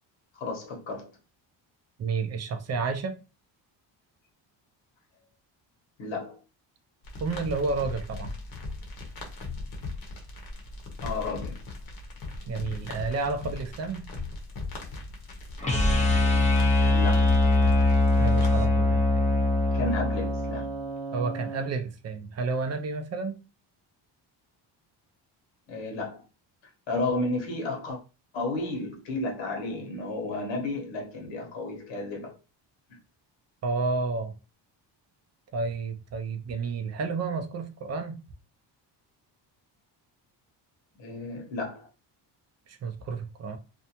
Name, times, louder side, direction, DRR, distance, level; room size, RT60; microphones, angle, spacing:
voice 1, 0.3-1.1 6.0-6.4 11.0-11.6 16.9-17.5 19.7-20.7 25.7-26.2 26.9-28.0 28.3-32.3 32.9-33.0 41.0-41.9, left 2 dB, 75° left, 1.1 m, -32 dB
voice 2, 2.0-3.2 7.2-8.3 12.5-14.0 18.2-19.3 21.1-23.4 33.6-34.3 35.5-38.2 42.7-43.6, right 4 dB, 35° right, 0.4 m, -31 dB
sound 1, 7.0-18.5, left 3 dB, 55° left, 0.9 m, -38 dB
sound 2, 15.6-21.7, left 2 dB, 15° left, 0.5 m, -23 dB
2.5 x 2.1 x 2.8 m
cardioid pair, 110°, 45 cm